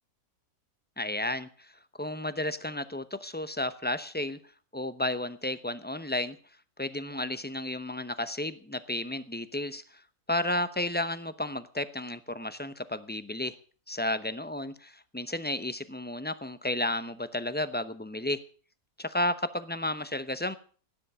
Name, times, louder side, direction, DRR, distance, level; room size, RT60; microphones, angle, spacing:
voice 1, 1.0-1.5 2.0-4.4 4.7-6.4 6.8-9.8 10.3-13.6 13.9-18.4 19.0-20.5, left 1 dB, 10° left, 12 dB, 0.6 m, -32 dB
16.5 x 10.0 x 6.9 m, 0.42 s
omnidirectional pair, 1.6 m